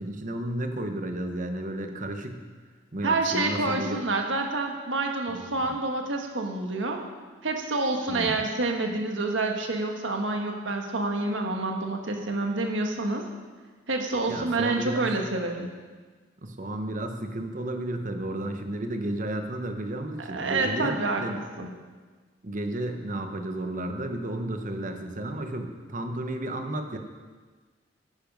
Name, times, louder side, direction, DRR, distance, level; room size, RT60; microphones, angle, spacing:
voice 1, 0.0-2.4 2.9-4.0 5.3-5.7 8.1-8.4 14.3-15.1 16.4-21.4 22.4-27.0, right 1 dB, 45° right, 6 dB, 1.1 m, -33 dB
voice 2, 3.0-7.0 7.4-13.2 13.9-15.7 20.2-21.2 21.6-21.7, right 2 dB, 90° right, 2 dB, 1.5 m, -28 dB
10.5 x 9.9 x 5.4 m, 1.4 s
head